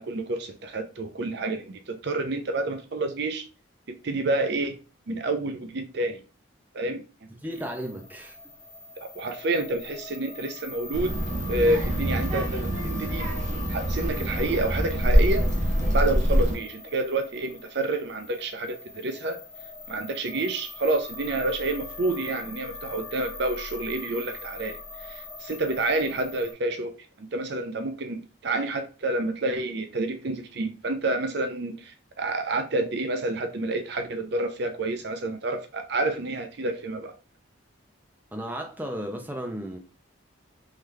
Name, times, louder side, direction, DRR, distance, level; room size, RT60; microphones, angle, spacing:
voice 1, 0.0-3.4 3.9-4.7 5.1-6.2 6.7-7.0 9.0-11.2 11.5-13.3 13.7-15.5 15.9-19.4 19.9-26.9 27.2-37.1, right 2 dB, 55° right, 0.5 m, -29 dB
voice 2, 7.4-8.4 38.3-39.8, equal, 10° right, 0.6 m, -34 dB
sound 1, 7.5-26.5, left 3 dB, 25° left, 1.4 m, -42 dB
Child speech kid speaking, 10.9-16.5, equal, 35° right, 0.9 m, -25 dB
3.8 x 3.1 x 3.2 m
head